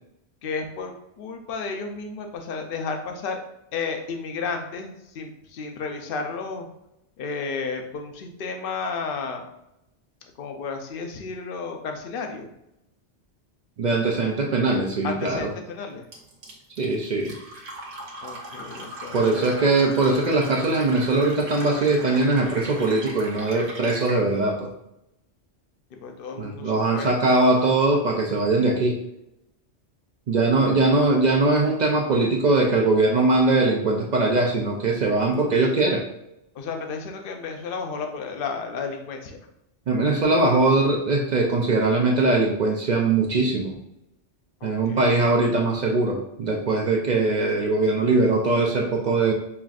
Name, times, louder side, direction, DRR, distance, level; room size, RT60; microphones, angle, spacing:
voice 1, 0.4-3.4 3.7-6.7 7.2-9.4 10.4-12.5 15.0-16.1 18.2-19.6 25.9-27.1 36.5-39.5 44.6-45.1, left 4 dB, 60° left, 4 dB, 0.7 m, -32 dB
voice 2, 13.8-15.5 16.8-17.3 19.1-24.7 26.4-29.0 30.3-36.1 39.9-43.8 44.6-49.3, right 3 dB, 60° right, 0 dB, 0.4 m, -21 dB
Fill (with liquid), 16.1-24.2, right 1 dB, 85° right, 1.2 m, -39 dB
5.6 x 2.4 x 2.4 m, 0.84 s
omnidirectional pair, 1.2 m